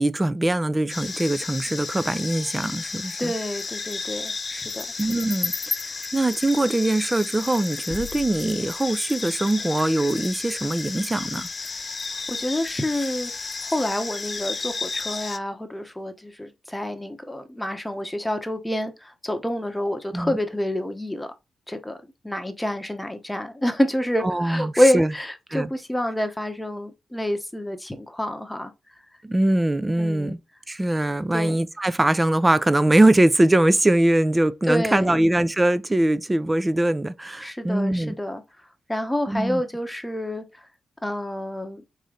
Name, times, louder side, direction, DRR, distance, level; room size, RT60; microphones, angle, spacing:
voice 1, 0.0-3.3 5.0-5.5 6.1-11.5 20.1-20.4 24.2-25.1 25.5-25.7 29.2-30.4 30.7-38.1 39.3-39.6, right 1 dB, 15° right, 0.5 m, -22 dB
sound 1, 0.9-15.4, left 4 dB, 40° left, 0.4 m, -32 dB
voice 2, 3.2-5.1 12.3-13.3 13.6-21.3 21.7-28.7 30.0-30.4 31.3-31.6 34.7-35.2 37.4-38.4 38.9-40.4 41.0-41.8, left 1 dB, 10° left, 0.9 m, -27 dB
4.1 x 3.1 x 3.8 m
cardioid pair, 80°, 0 cm